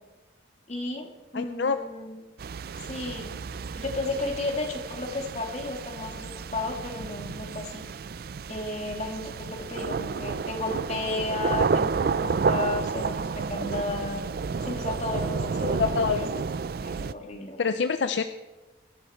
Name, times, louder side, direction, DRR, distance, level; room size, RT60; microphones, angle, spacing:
voice 1, 0.7-2.2 2.8-3.3 3.8-7.9 8.5-14.2 14.6-16.3 16.8-17.6, left 2 dB, 35° left, 1 dB, 2.3 m, -33 dB
voice 2, 1.3-1.8 15.6-16.4 17.6-18.2, left 5 dB, 65° left, 10 dB, 0.5 m, -26 dB
sound 1, 2.4-17.1, right 5 dB, 50° right, 0.4 m, -31 dB
23.5 x 11.0 x 4.4 m, 1.2 s
head